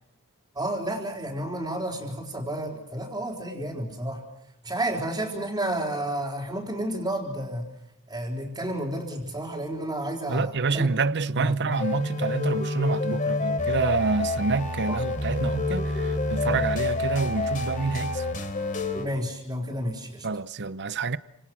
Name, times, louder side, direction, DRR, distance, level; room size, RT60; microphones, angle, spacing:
voice 1, 0.5-4.2 4.6-7.7 8.1-10.9 11.4-11.8 14.9-15.0 19.0-20.3, right 1 dB, 15° right, 4.4 m, -31 dB
voice 2, 10.3-18.3 20.2-21.2, right 4 dB, 50° right, 0.9 m, -27 dB
sound 1, 11.7-19.0, left 2 dB, 35° left, 3.8 m, -28 dB
30.0 x 27.0 x 6.3 m
head